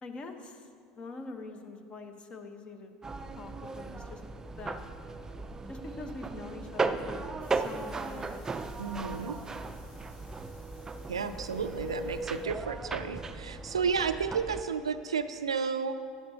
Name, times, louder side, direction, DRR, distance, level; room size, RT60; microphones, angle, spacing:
voice 1, 0.0-3.0 3.4-4.2 4.6-4.8 5.7-8.6, left 3 dB, 35° left, 6 dB, 1.0 m, -44 dB
sound 1, 3.0-14.6, right 3 dB, 20° right, 0.5 m, -37 dB
sound 2, 7.4-12.5, left 3 dB, 55° left, 2.0 m, -61 dB
voice 2, 8.8-9.4 11.1-16.0, right 6 dB, 90° right, 10 dB, 0.4 m, -32 dB
12.5 x 9.6 x 2.8 m, 2.2 s
hypercardioid pair, 75°, 3 cm